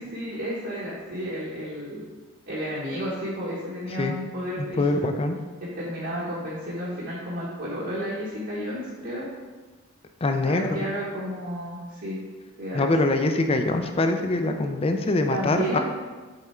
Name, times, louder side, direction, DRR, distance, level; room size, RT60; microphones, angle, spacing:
voice 1, 0.0-2.0 2.5-5.1 5.6-9.3 10.4-12.2 12.6-12.9 15.0-15.8, equal, 55° right, -8 dB, 1.1 m, -32 dB
voice 2, 4.6-5.4 10.2-10.8 12.7-15.8, left 2 dB, 25° left, 6 dB, 0.4 m, -24 dB
6.6 x 3.6 x 4.3 m, 1.4 s
head